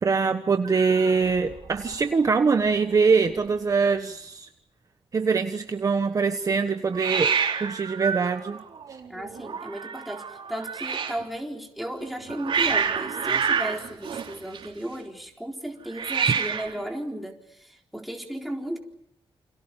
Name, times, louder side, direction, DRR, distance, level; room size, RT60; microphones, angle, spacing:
voice 1, 0.0-4.5 5.1-7.3 7.6-8.6, right 5 dB, 35° right, 7 dB, 1.2 m, -23 dB
Hiss, 0.6-2.0 2.3-2.7 3.0-3.1 3.3-3.9 6.9-11.2 12.0-14.9 15.9-16.8, right 6 dB, 60° right, 3.4 m, -29 dB
voice 2, 9.1-18.8, right 1 dB, ahead, 1 dB, 4.0 m, -35 dB
29.0 x 28.0 x 5.5 m, 0.74 s
wide cardioid pair, 145°, 10 cm